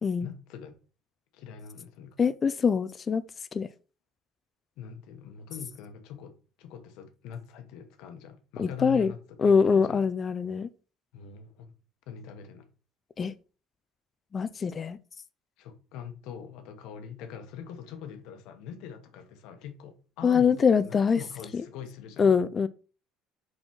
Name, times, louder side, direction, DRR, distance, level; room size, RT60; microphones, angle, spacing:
voice 1, 0.2-0.7 1.3-2.3 4.8-10.0 11.1-11.7 12.1-12.7 15.6-22.4, left 8 dB, 75° left, 1.0 m, -43 dB
voice 2, 2.2-3.2 3.5-3.7 8.6-9.1 9.4-10.7 13.2-13.3 14.3-15.0 20.2-21.2 22.2-22.7, left 6 dB, 25° left, 0.4 m, -23 dB
4.8 x 4.3 x 4.6 m
cardioid pair, 145°, 0 cm